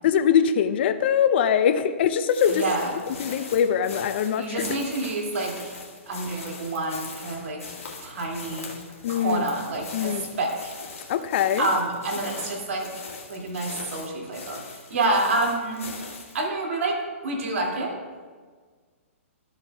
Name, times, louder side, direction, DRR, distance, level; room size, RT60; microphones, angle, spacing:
voice 1, 0.0-2.6 3.2-4.7 9.0-9.4 9.9-10.2 11.1-11.7 14.9-15.1, left 8 dB, 50° left, 11 dB, 0.5 m, -22 dB
sound 1, 2.3-16.5, left 4 dB, 85° left, 1.7 m, -40 dB
voice 2, 2.5-2.9 4.4-5.7 6.1-7.8 8.0-8.7 9.1-10.8 11.6-12.9 13.3-15.9 16.3-17.0 17.2-18.0, right 2 dB, 65° right, 0 dB, 2.2 m, -28 dB
13.0 x 7.5 x 2.2 m, 1.5 s
hypercardioid pair, 140°, 7 cm